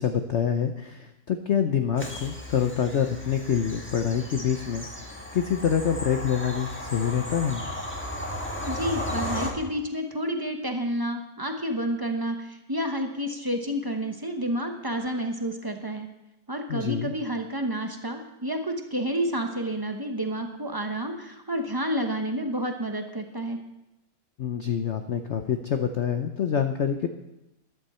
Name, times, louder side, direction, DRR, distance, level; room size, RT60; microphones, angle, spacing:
voice 1, 0.0-4.9 5.3-7.6 16.7-17.1 24.4-27.1, left 8 dB, 80° left, 7 dB, 0.6 m, -26 dB
Bird vocalization bird call bird song / Train, 2.0-9.5, left 1 dB, 5° left, 1.4 m, -35 dB
voice 2, 8.7-16.1 16.5-23.6, equal, 25° right, 4 dB, 0.5 m, -30 dB
13.5 x 11.5 x 4.3 m, 0.93 s
omnidirectional pair, 2.1 m